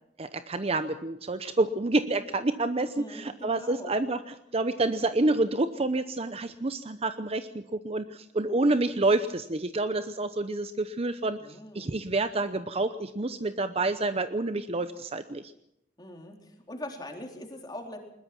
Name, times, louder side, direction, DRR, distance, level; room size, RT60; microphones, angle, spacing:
voice 1, 0.2-11.4 11.7-15.5, right 2 dB, 35° right, 11 dB, 0.8 m, -28 dB
voice 2, 2.9-3.9 11.4-12.1 16.0-18.0, left 1 dB, 25° left, 2 dB, 3.9 m, -42 dB
21.0 x 21.0 x 6.0 m, 0.80 s
head